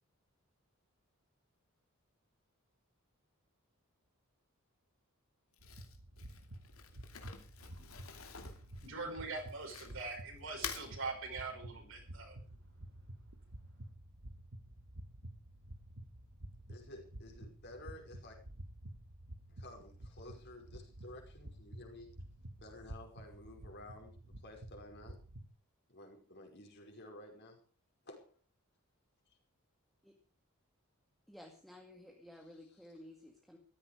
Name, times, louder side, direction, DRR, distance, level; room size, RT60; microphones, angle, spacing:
Crumpling crinkling, 5.5-10.1 10.5-10.9, left 7 dB, 70° left, 2.8 m, -47 dB
sound 1, 5.6-25.5, right 1 dB, 85° right, 1.9 m, -51 dB
voice 1, 8.7-12.4, right 3 dB, 60° right, 3 dB, 5.6 m, -43 dB
voice 2, 16.7-18.4 19.5-22.1 22.6-25.2 25.9-27.6 28.0-28.4 29.3-29.4 32.3-33.0, left 1 dB, 50° left, 2 dB, 5.2 m, -53 dB
voice 3, 31.3-33.6, left 1 dB, ahead, 1 dB, 2.1 m, -54 dB
15.5 x 14.0 x 5.0 m, 0.38 s
head